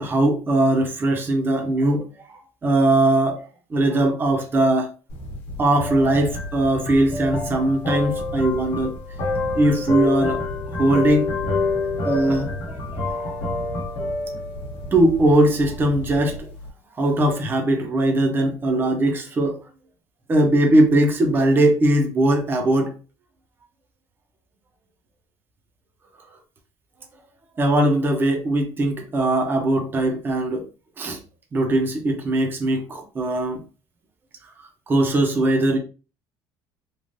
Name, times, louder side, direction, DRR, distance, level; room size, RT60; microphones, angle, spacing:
voice 1, 0.0-3.4 3.7-4.9 5.6-8.9 9.5-10.4 10.8-11.3 12.0-12.8 13.0-13.3 14.9-16.5 17.0-19.6 20.3-22.9 27.6-30.6 31.0-31.2 31.5-33.6 34.9-35.8, right 1 dB, 25° right, 0.6 m, -20 dB
sound 1, 5.1-16.7, left 3 dB, 70° left, 0.9 m, -28 dB
3.1 x 2.4 x 2.6 m
cardioid pair, 135°, 9 cm